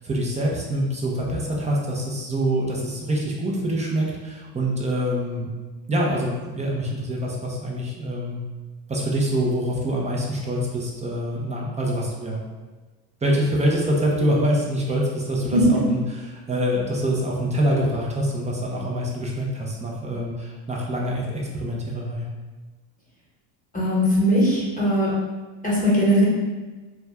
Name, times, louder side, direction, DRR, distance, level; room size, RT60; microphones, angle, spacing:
voice 1, 0.0-5.5 5.9-8.4 8.9-12.4 13.2-16.0 16.3-22.3, equal, 15° right, -3 dB, 0.5 m, -25 dB
voice 2, 23.7-25.1 25.6-26.3, equal, 15° left, -7 dB, 1.1 m, -19 dB
2.6 x 2.3 x 3.3 m, 1.3 s
supercardioid pair, 105°, 50 cm